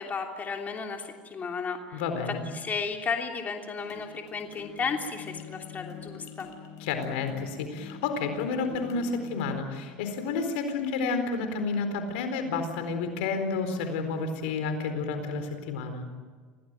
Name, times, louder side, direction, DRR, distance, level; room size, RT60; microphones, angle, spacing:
voice 1, 0.0-2.0 2.5-6.5, left 5 dB, 30° left, 2 dB, 3.2 m, -33 dB
voice 2, 1.9-2.4 6.8-16.0, left 4 dB, 80° left, 7 dB, 4.3 m, -30 dB
sound 1, 3.8-9.4, left 6 dB, 60° left, 4.2 m, -45 dB
27.0 x 18.0 x 9.1 m, 1.5 s
supercardioid pair, 100°, 6 cm